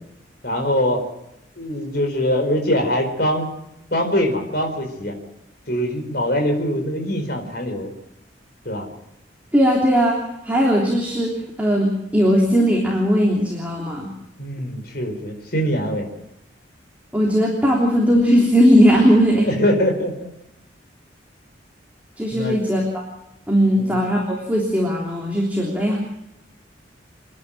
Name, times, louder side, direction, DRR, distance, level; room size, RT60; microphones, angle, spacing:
voice 1, 0.4-1.0 1.6-3.5 3.9-5.1 5.7-7.9 8.6-8.9 14.4-16.1 19.4-20.3 22.3-22.6 23.8-23.9, equal, 55° left, 3 dB, 4.9 m, -23 dB
voice 2, 9.5-10.2 10.4-11.3 11.6-14.1 17.1-19.5 22.2-22.8 23.5-26.0, equal, 10° right, -2 dB, 3.2 m, -18 dB
28.5 x 11.0 x 9.0 m, 0.86 s
head